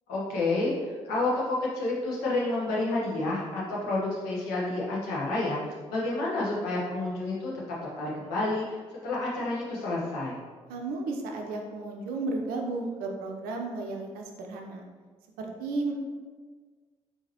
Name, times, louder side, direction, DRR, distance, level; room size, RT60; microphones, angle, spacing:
voice 1, 0.1-7.5 8.0-10.4, left 2 dB, 65° left, -5 dB, 1.0 m, -29 dB
voice 2, 10.7-14.8 15.4-15.9, right 3 dB, 65° right, 2 dB, 0.6 m, -33 dB
4.7 x 2.8 x 2.8 m, 1.5 s
figure-of-eight pair, 40°, 17 cm